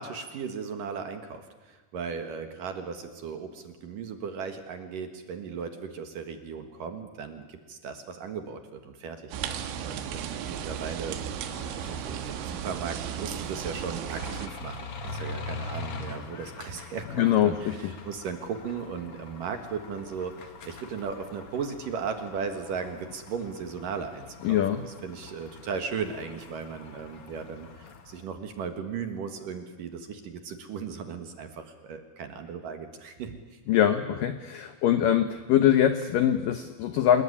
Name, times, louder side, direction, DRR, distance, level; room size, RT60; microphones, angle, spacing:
voice 1, 0.0-11.4 11.8-33.6, right 6 dB, 60° right, 7 dB, 2.6 m, -37 dB
sound 1, 9.3-14.5, right 8 dB, 90° right, 3.9 m, -35 dB
sound 2, 11.3-28.2, left 3 dB, 45° left, 1.9 m, -44 dB
voice 2, 17.2-17.9 24.4-24.8 33.7-37.2, left 10 dB, 85° left, 9 dB, 1.9 m, -23 dB
27.0 x 21.0 x 9.9 m, 1.2 s
omnidirectional pair, 5.4 m